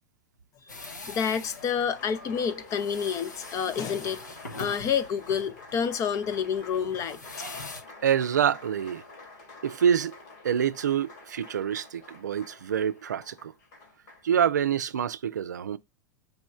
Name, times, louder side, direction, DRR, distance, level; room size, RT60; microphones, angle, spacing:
sound 1, 0.7-7.8, left 2 dB, 85° left, 1.1 m, -43 dB
voice 1, 0.8-7.2, left 7 dB, 35° left, 0.6 m, -29 dB
Applause, 1.0-14.3, left 3 dB, 70° left, 2.4 m, -48 dB
voice 2, 8.0-9.0 9.6-10.1 10.4-13.5 14.2-15.8, right 8 dB, 80° right, 0.4 m, -26 dB
5.3 x 3.0 x 2.4 m
figure-of-eight pair, 90°, 9 cm